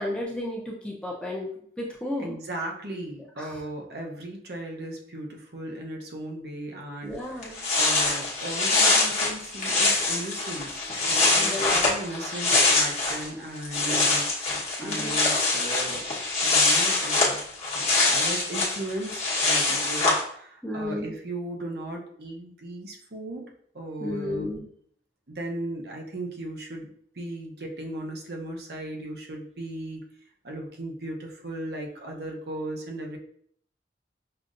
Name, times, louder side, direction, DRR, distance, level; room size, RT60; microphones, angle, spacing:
voice 1, 0.0-1.5 1.8-2.3 3.4-3.5 7.0-7.6 11.4-11.7 14.8-15.2 20.6-21.1 24.0-24.6, left 1 dB, 5° left, -4 dB, 0.5 m, -32 dB
voice 2, 2.2-17.4 17.7-23.5 23.7-24.5 25.3-30.0 30.4-33.2, right 1 dB, 65° right, 1 dB, 0.8 m, -37 dB
sound 1, 7.1-7.2 7.4-13.3 13.5-20.2, left 3 dB, 40° left, 1.1 m, -24 dB
5.7 x 2.4 x 2.5 m, 0.64 s
head